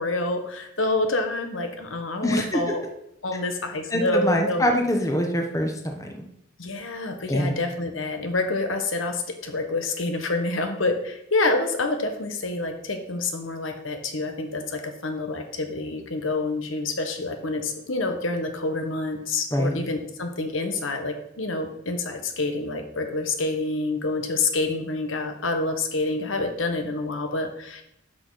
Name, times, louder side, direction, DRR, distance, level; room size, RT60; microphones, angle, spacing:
voice 1, 0.0-2.8 3.2-4.8 6.6-27.8, left 2 dB, 85° left, 5 dB, 1.2 m, -27 dB
voice 2, 2.2-2.7 3.9-6.2 7.3-7.6 19.5-19.8, equal, 15° left, 3 dB, 0.9 m, -24 dB
11.0 x 6.2 x 4.0 m, 0.77 s
head